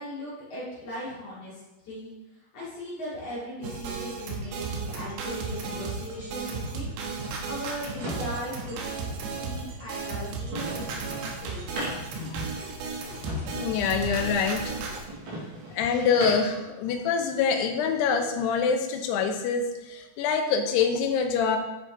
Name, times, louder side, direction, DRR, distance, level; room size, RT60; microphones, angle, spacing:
voice 1, 0.0-2.1 2.5-6.9 7.4-11.8, left 1 dB, 45° left, -8 dB, 4.8 m, -38 dB
sound 1, 3.6-15.0, right 4 dB, 85° right, 3.3 m, -34 dB
sound 2, 7.5-16.6, right 1 dB, 55° right, 3.8 m, -40 dB
voice 2, 12.0-12.5 13.1-14.8 15.7-21.6, left 6 dB, 90° left, 5 dB, 3.0 m, -26 dB
10.5 x 6.8 x 3.9 m, 1.0 s
omnidirectional pair, 4.6 m